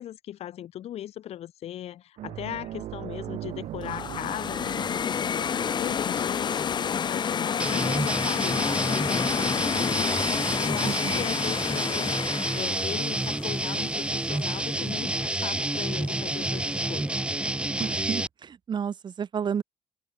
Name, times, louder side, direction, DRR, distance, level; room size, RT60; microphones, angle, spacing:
voice 1, 0.0-5.5 5.8-17.2, left 12 dB, 70° left, 4.1 m, -38 dB
sound 1, 2.2-11.1 11.4-11.6 13.7-13.8, right 13 dB, 75° right, 3.4 m, -42 dB
sound 2, 3.8-14.8, left 7 dB, 40° left, 0.9 m, -29 dB
sound 3, 7.6-18.3, right 1 dB, 10° right, 2.0 m, -29 dB
voice 2, 10.8-11.3 17.8-19.6, right 7 dB, 45° right, 1.4 m, -31 dB
open air
cardioid pair, 100°, 11 cm